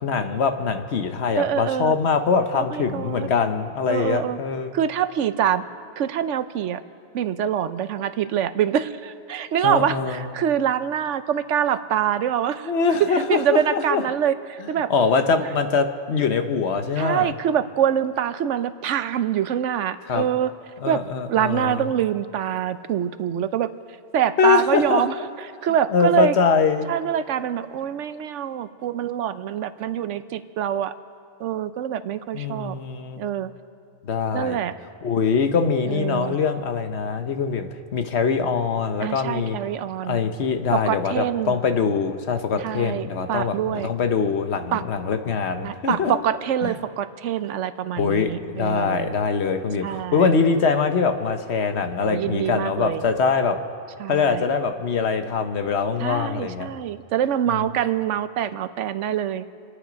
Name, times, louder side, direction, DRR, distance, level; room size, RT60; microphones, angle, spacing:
voice 1, 0.0-4.7 9.6-10.3 12.6-14.0 14.9-17.3 20.1-20.3 20.8-21.9 24.4-25.1 25.9-26.9 32.3-33.2 34.0-34.6 35.0-39.6 40.0-46.2 46.6-46.7 48.0-53.6 54.1-56.7, left 5 dB, 65° left, 8 dB, 1.2 m, -23 dB
voice 2, 1.4-1.9 2.6-3.3 3.9-4.4 4.7-5.6 6.0-6.8 7.1-12.7 13.0-14.9 17.0-20.5 20.9-21.0 21.3-23.7 24.1-25.1 25.6-26.3 26.9-30.9 31.4-32.7 33.2-33.5 34.3-34.7 35.9-36.4 39.0-40.2 40.7-41.6 42.6-43.9 44.7-44.8 45.6-49.1 49.8-50.3 52.0-53.0 54.0-54.4 56.0-59.4, right 9 dB, 85° right, 13 dB, 1.0 m, -25 dB
28.0 x 10.0 x 5.1 m, 2.3 s
omnidirectional pair, 1.2 m